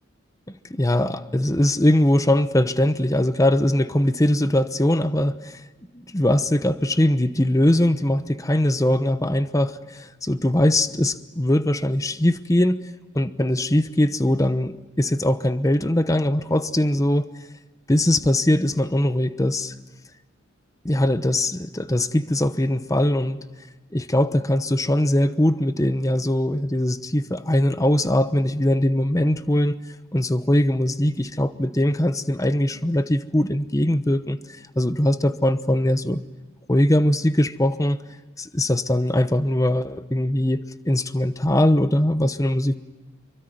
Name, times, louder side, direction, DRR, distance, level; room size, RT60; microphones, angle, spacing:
voice 1, 0.7-5.6 5.9-12.8 13.1-17.3 17.9-19.7 20.8-23.4 23.9-29.8 30.1-36.2 36.7-38.0 38.4-42.8, left 1 dB, 15° left, 12 dB, 1.0 m, -21 dB
26.5 x 23.5 x 9.4 m, 1.2 s
head